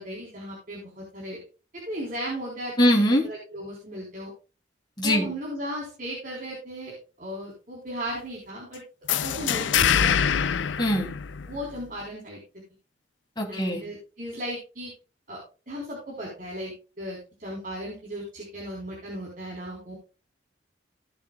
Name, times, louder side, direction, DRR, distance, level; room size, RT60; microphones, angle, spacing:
voice 1, 0.0-1.4 1.7-2.9 3.2-4.3 5.0-8.8 9.1-10.2 11.5-12.4 13.5-14.9 15.3-15.4 15.7-20.0, equal, 45° right, -3 dB, 3.8 m, -36 dB
voice 2, 2.8-3.2 5.0-5.3 10.8-11.1 13.4-13.9, equal, 25° left, 0 dB, 2.8 m, -22 dB
sound 1, 9.1-11.8, left 8 dB, 85° left, 0.5 m, -24 dB
17.0 x 7.2 x 2.3 m, 0.32 s
head